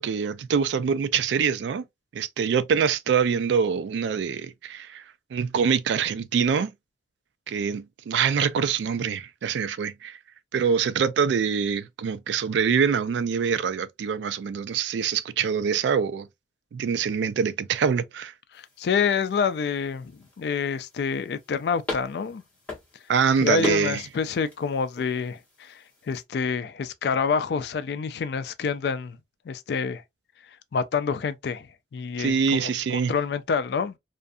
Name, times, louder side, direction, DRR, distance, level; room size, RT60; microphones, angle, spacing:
voice 1, 0.0-1.9 2.1-5.0 5.3-6.7 7.5-10.2 10.5-16.3 16.7-18.3 23.1-24.0 32.2-33.1, right 6 dB, 75° right, 0.3 m, -24 dB
sound 1, 18.5-26.2, left 2 dB, 10° left, 1.0 m, -41 dB
voice 2, 18.8-22.4 23.4-25.8 26.1-29.2 29.5-30.0 30.7-31.7 31.9-32.7 33.1-34.0, left 6 dB, 60° left, 0.3 m, -27 dB
2.5 x 2.3 x 2.5 m
head